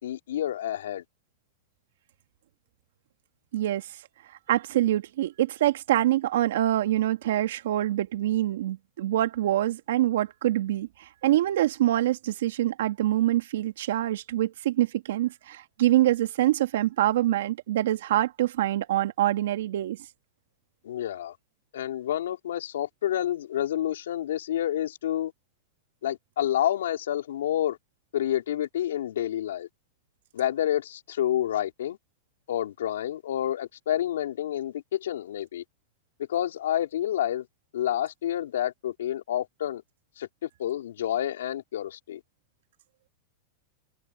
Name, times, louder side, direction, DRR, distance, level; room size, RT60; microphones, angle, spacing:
voice 1, 0.0-1.0 20.8-21.4 21.7-25.3 26.0-27.8 28.1-29.7 30.3-32.0 32.5-35.6 36.3-37.5 37.7-39.8 40.2-42.2, left 11 dB, 85° left, 4.7 m, -29 dB
voice 2, 3.5-4.0 4.5-20.0, right 14 dB, 75° right, 2.3 m, -25 dB
supercardioid pair, 150°, 0 cm